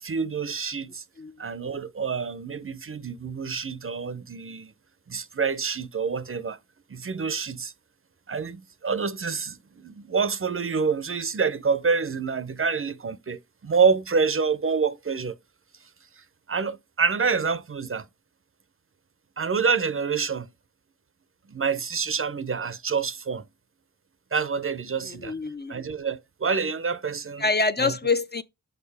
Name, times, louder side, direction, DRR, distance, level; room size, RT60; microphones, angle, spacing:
voice 1, 0.0-1.0 1.4-4.7 5.1-6.6 6.9-7.7 8.3-15.4 16.2-18.1 19.4-20.5 21.5-23.4 24.3-25.3 25.7-27.4 27.8-27.9, right 5 dB, 40° right, 0.5 m, -27 dB
voice 2, 25.0-25.7 27.4-28.4, left 3 dB, 30° left, 0.4 m, -25 dB
6.5 x 5.0 x 3.3 m
wide cardioid pair, 60°, 34 cm